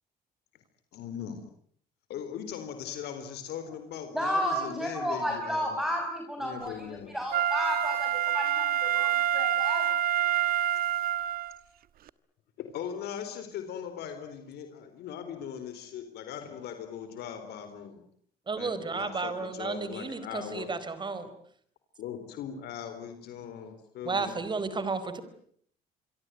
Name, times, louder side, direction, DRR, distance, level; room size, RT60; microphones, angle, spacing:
voice 1, 0.9-1.4 2.1-5.8 6.4-7.1 12.6-18.0 18.5-20.7 22.0-24.3, left 8 dB, 75° left, 8 dB, 4.2 m, -39 dB
voice 2, 4.1-6.9 7.1-9.9, equal, ahead, 3 dB, 5.8 m, -32 dB
Wind instrument woodwind instrument, 7.3-11.6 12.1-12.2, right 11 dB, 60° right, 1.4 m, -27 dB
voice 3, 18.5-21.3 24.0-25.2, right 4 dB, 25° right, 13 dB, 4.6 m, -33 dB
26.5 x 23.0 x 9.4 m, 0.65 s
cardioid pair, 110°, 17 cm